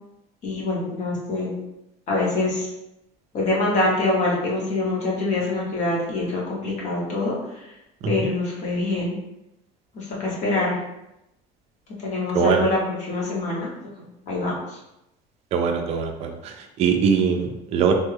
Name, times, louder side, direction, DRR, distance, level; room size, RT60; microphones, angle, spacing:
voice 1, 0.4-1.5 2.1-2.7 3.3-7.4 7.6-7.7 8.1-9.2 9.9-10.8 12.0-13.7 14.3-14.8, left 2 dB, 45° left, -4 dB, 1.0 m, -25 dB
voice 2, 12.3-12.7 15.5-17.9, right 6 dB, 40° right, 4 dB, 0.4 m, -22 dB
3.3 x 2.2 x 3.3 m, 0.89 s
cardioid pair, 170°, 17 cm